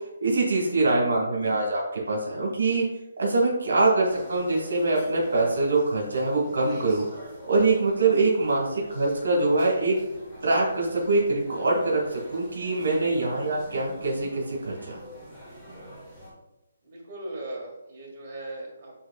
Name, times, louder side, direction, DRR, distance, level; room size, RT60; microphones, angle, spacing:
voice 1, 0.2-2.8 3.2-7.2 7.5-9.9 10.4-15.0, right 2 dB, 75° right, -3 dB, 1.4 m, -24 dB
sound 1, 4.0-16.3, right 1 dB, 5° right, 1.6 m, -45 dB
voice 2, 16.8-18.9, right 1 dB, 35° right, -3 dB, 1.6 m, -38 dB
7.2 x 3.0 x 2.3 m, 0.93 s
hypercardioid pair, 160°, 0 cm